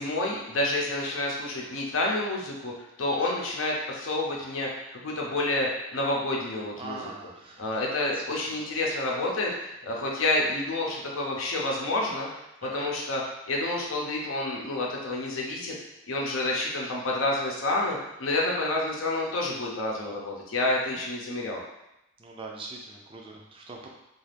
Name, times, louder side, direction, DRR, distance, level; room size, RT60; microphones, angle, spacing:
voice 1, 0.0-2.7 3.0-4.7 5.0-7.0 7.6-12.3 12.6-13.2 13.5-15.8 16.1-21.6, left 2 dB, 75° left, -2 dB, 0.6 m, -29 dB
voice 2, 6.8-7.8 8.1-8.6 9.8-10.1 12.6-12.9 20.9-21.0 22.2-23.9, right 3 dB, 25° right, -1 dB, 0.3 m, -43 dB
2.4 x 2.4 x 3.3 m, 0.91 s
head